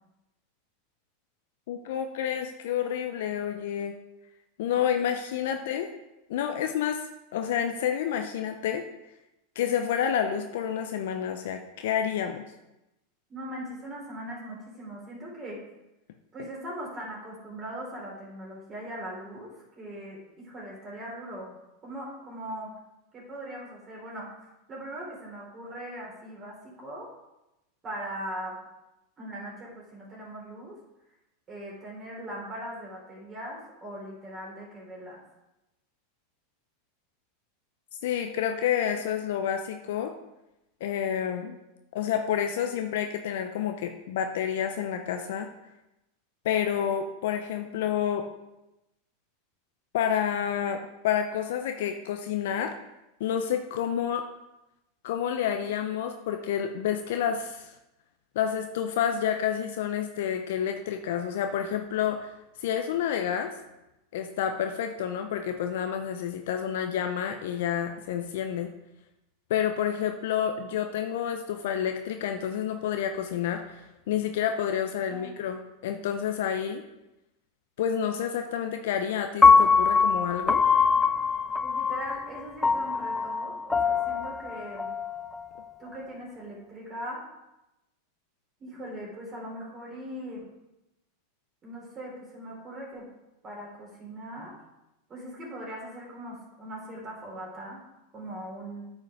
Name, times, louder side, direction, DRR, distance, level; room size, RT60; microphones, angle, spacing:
voice 1, 1.7-4.0 4.6-5.9 6.3-7.0 7.3-8.8 9.6-12.4 38.0-40.1 40.8-41.6 41.9-45.5 46.4-48.3 49.9-52.7 53.2-54.2 55.0-57.7 58.3-63.6 64.1-68.7 69.5-76.8 77.8-80.6, left 9 dB, 65° left, 5 dB, 0.6 m, -29 dB
voice 2, 13.3-15.6 16.3-21.6 21.8-22.7 23.1-24.4 24.7-27.1 27.8-28.6 29.2-30.8 31.5-35.2 75.1-75.4 81.6-84.9 85.8-87.2 88.6-90.5 91.6-93.1 93.4-94.5 95.1-97.8 98.1-98.9, right 1 dB, 30° right, -4 dB, 3.4 m, -40 dB
Piano, 79.4-85.6, left 5 dB, 10° left, 0.4 m, -23 dB
8.9 x 5.3 x 4.8 m, 0.93 s
hypercardioid pair, 95°, 0 cm